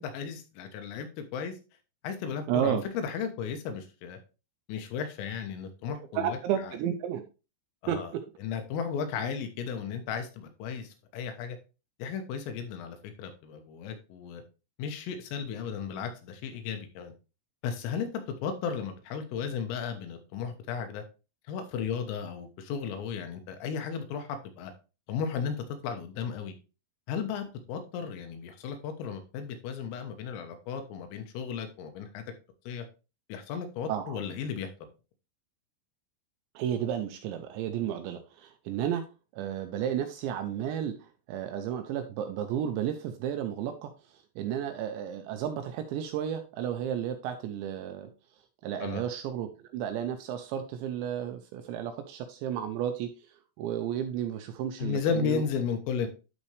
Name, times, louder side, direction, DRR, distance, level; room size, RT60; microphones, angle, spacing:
voice 1, 0.0-1.5 2.0-4.2 4.7-6.4 6.6-6.7 7.8-8.1 8.4-11.6 12.0-14.4 14.8-17.1 17.6-21.0 21.5-24.7 25.1-25.6 25.8-26.6 27.1-32.2 32.7-32.9 33.3-34.7 48.8-49.0 54.8-56.1, left 6 dB, 90° left, 6 dB, 3.9 m, -34 dB
voice 2, 2.5-2.8 6.1-7.2 7.9-8.2 33.9-34.2 36.6-39.0 39.3-48.1 48.6-53.1 53.6-55.4, right 9 dB, 85° right, 7 dB, 2.7 m, -32 dB
12.5 x 4.3 x 3.3 m, 0.31 s
omnidirectional pair, 5.8 m